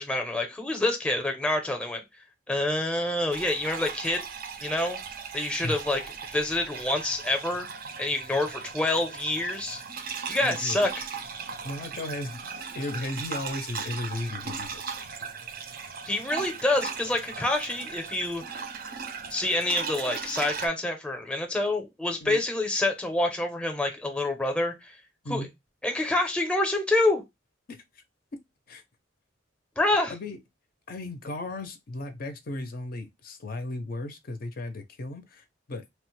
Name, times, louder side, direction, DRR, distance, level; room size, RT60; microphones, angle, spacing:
voice 1, 0.0-2.0 2.5-4.3 4.6-5.0 5.3-6.0 6.3-7.7 8.0-9.8 10.3-11.0 16.1-18.6 19.3-25.0 25.3-25.5 25.8-27.2 29.8-30.1, left 2 dB, 5° left, 0.6 m, -27 dB
sound 1, 3.3-20.7, right 6 dB, 45° right, 0.4 m, -38 dB
voice 2, 10.4-10.8 11.6-12.4 12.8-14.8 22.2-22.4 25.2-25.5 27.7-28.0 28.3-28.4 28.7-28.8 30.1-30.4 30.9-35.9, left 2 dB, 50° left, 0.5 m, -35 dB
3.1 x 2.1 x 3.0 m
head